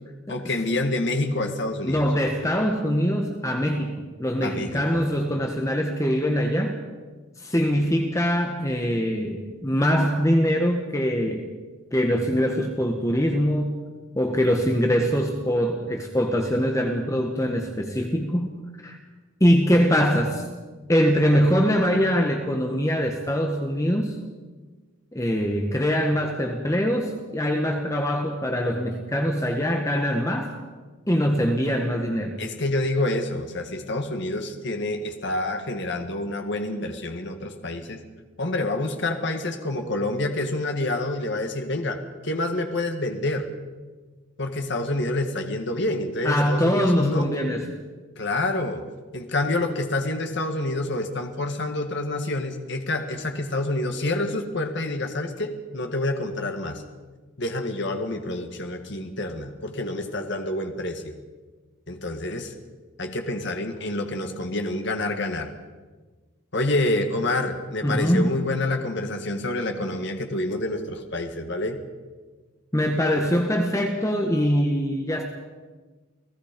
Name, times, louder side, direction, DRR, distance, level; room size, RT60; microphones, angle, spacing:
voice 1, 0.3-2.1 4.4-5.0 32.4-38.0 38.4-43.5 44.4-47.3 48.2-48.8 49.1-56.8 57.4-61.1 61.9-62.5 63.0-65.5 66.5-71.8, left 2 dB, 55° left, 5 dB, 1.9 m, -27 dB
voice 2, 1.8-6.8 7.4-11.5 11.9-13.8 14.1-19.0 19.4-20.4 20.9-24.2 25.1-30.5 31.1-32.4 46.2-47.6 67.8-68.3 72.7-75.2, equal, 15° left, 3 dB, 1.4 m, -23 dB
29.5 x 18.0 x 5.3 m, 1.3 s
head